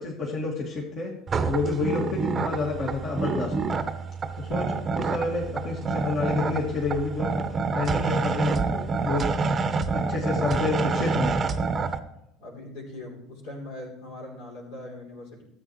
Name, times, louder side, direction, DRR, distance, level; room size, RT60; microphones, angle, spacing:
voice 1, 0.0-1.1 1.4-3.8 4.4-7.3 7.7-8.5 9.0-9.3 9.9-10.8 11.0-11.3, left 3 dB, 45° left, -3 dB, 2.2 m, -29 dB
sound 1, 1.3-12.0, right 4 dB, 30° right, 0.8 m, -27 dB
voice 2, 10.5-10.9 12.4-15.4, left 1 dB, 70° left, -3 dB, 3.3 m, -41 dB
14.0 x 8.0 x 3.2 m, 0.81 s
figure-of-eight pair, 65°, 0 cm